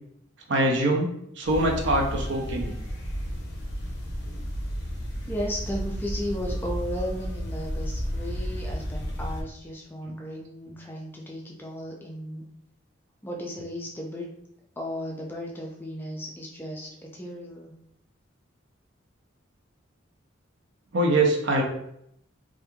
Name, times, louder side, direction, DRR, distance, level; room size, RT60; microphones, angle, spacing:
voice 1, 0.5-1.1 1.4-2.7 10.0-10.1 20.9-21.6, right 1 dB, 60° right, 1 dB, 0.5 m, -23 dB
sound 1, 1.4-9.4, equal, 55° left, 0.6 m, -32 dB
voice 2, 5.3-12.4 13.2-14.3 14.8-17.7, equal, 10° left, -2 dB, 0.3 m, -35 dB
2.9 x 2.4 x 2.2 m, 0.74 s
head